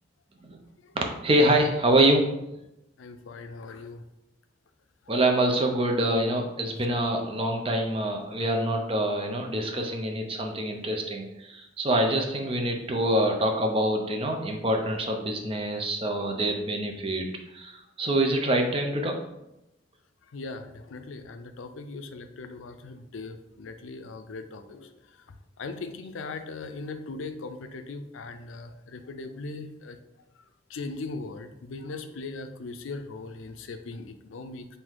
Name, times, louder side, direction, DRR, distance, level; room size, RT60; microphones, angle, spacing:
voice 1, 0.9-2.3 5.1-17.3 17.5-19.2, right 1 dB, 30° right, 3 dB, 0.6 m, -25 dB
voice 2, 3.0-4.0 20.3-25.0 25.6-30.0 30.7-34.7, left 3 dB, 90° left, 9 dB, 0.4 m, -39 dB
3.8 x 2.7 x 4.6 m, 0.90 s
head